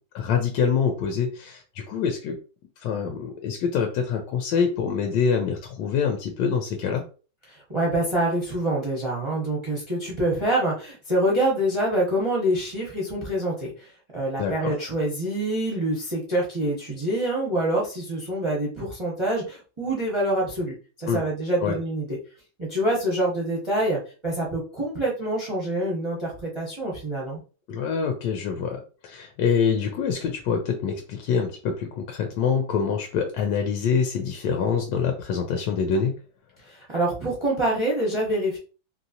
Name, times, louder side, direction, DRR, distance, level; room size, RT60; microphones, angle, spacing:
voice 1, 0.1-2.4 2.8-7.0 14.4-14.7 21.1-21.2 21.6-21.8 27.7-36.1, left 6 dB, 75° left, 3 dB, 1.1 m, -25 dB
voice 2, 7.5-13.9 14.1-22.2 22.6-27.4 36.7-38.6, right 1 dB, 35° right, -4 dB, 0.4 m, -26 dB
3.0 x 2.7 x 2.7 m, 0.36 s
omnidirectional pair, 2.1 m